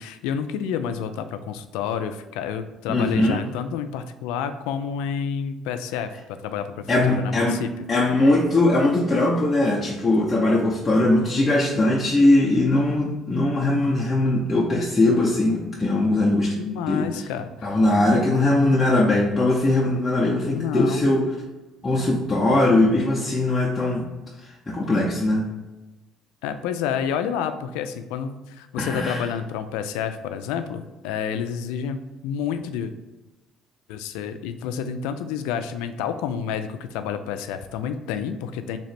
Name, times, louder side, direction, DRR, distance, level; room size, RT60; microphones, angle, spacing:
voice 1, 0.0-6.1 6.4-7.7 16.6-17.7 20.5-21.1 26.4-32.9 33.9-38.8, left 7 dB, 90° left, 9 dB, 0.3 m, -29 dB
voice 2, 2.9-3.4 6.9-7.6 7.9-16.6 16.9-17.0 17.6-21.2 21.8-24.1 24.7-25.5 28.8-29.2, left 2 dB, 20° left, -6 dB, 0.6 m, -20 dB
3.1 x 2.9 x 4.2 m, 1.1 s
cardioid pair, 95°, 0 cm